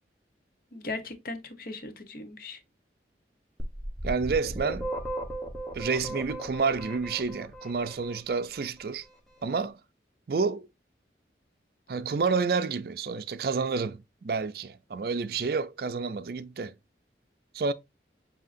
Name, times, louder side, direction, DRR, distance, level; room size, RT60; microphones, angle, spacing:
voice 1, 0.7-2.6, left 3 dB, 50° left, 1.0 m, -38 dB
sound 1, 3.6-8.4, right 1 dB, ahead, 1.1 m, -36 dB
voice 2, 4.0-4.9 5.7-9.1 9.4-9.8 10.3-10.7 11.9-16.7 17.5-17.7, right 4 dB, 55° right, 0.4 m, -29 dB
7.5 x 2.8 x 2.5 m
head